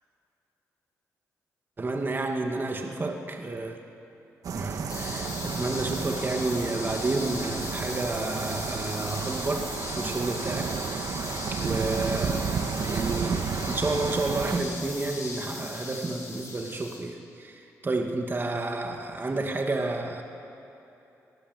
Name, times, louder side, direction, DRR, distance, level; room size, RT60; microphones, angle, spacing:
voice 1, 1.8-3.8 4.5-12.5 12.9-20.2, right 2 dB, 35° right, 3 dB, 2.4 m, -31 dB
sound 1, 4.4-14.6, right 6 dB, 70° right, 1.8 m, -32 dB
sound 2, 4.9-17.0, left 3 dB, 65° left, 6.9 m, -38 dB
25.0 x 19.0 x 8.1 m, 3.0 s
cardioid pair, 65°, 6 cm